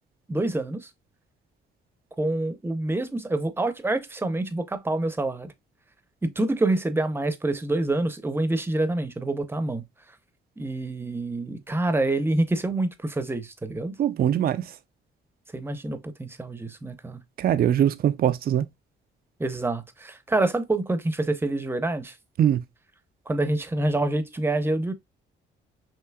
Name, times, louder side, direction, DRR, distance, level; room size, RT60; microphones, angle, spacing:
voice 1, 0.3-0.9 2.2-5.5 6.2-9.8 10.6-14.0 15.5-17.2 19.4-22.1 23.3-24.9, right 2 dB, 10° right, 0.7 m, -27 dB
voice 2, 14.0-14.6 17.4-18.6 22.4-22.6, right 10 dB, 50° right, 0.4 m, -22 dB
5.8 x 2.9 x 2.2 m
cardioid pair, 90°, 20 cm